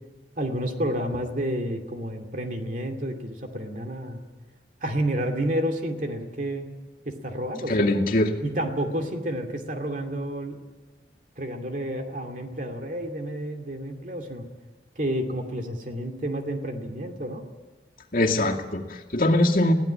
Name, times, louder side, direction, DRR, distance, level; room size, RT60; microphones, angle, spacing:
voice 1, 0.4-4.2 4.8-6.7 7.0-7.9 8.4-10.6 11.4-14.5 15.0-17.4, right 1 dB, 45° right, 4 dB, 2.5 m, -30 dB
voice 2, 7.7-8.3 18.1-19.7, left 1 dB, 50° left, 0 dB, 2.3 m, -22 dB
22.0 x 16.5 x 8.7 m, 1.3 s
head